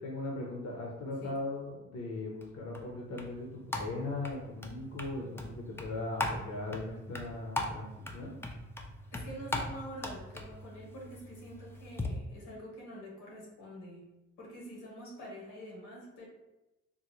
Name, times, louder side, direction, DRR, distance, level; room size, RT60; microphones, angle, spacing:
voice 1, 0.0-8.4, left 2 dB, 55° left, -2 dB, 0.7 m, -39 dB
sound 1, 2.4-12.1, left 2 dB, 10° left, 0.3 m, -40 dB
voice 2, 9.1-14.1 14.4-16.3, equal, 90° left, -3 dB, 1.4 m, -46 dB
3.8 x 2.1 x 3.0 m, 0.96 s
cardioid pair, 90°, 30 cm